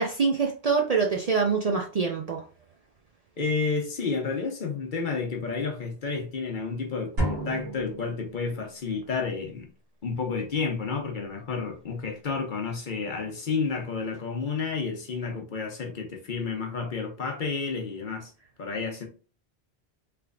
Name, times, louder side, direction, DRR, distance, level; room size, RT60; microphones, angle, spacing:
voice 1, 0.0-2.4, right 5 dB, 50° right, 0.5 m, -25 dB
voice 2, 3.4-9.6 10.0-18.3 18.6-19.1, left 4 dB, 50° left, 0.9 m, -31 dB
sound 1, 7.2-8.9, right 1 dB, 70° right, 1.7 m, -32 dB
3.4 x 3.0 x 2.4 m
omnidirectional pair, 1.1 m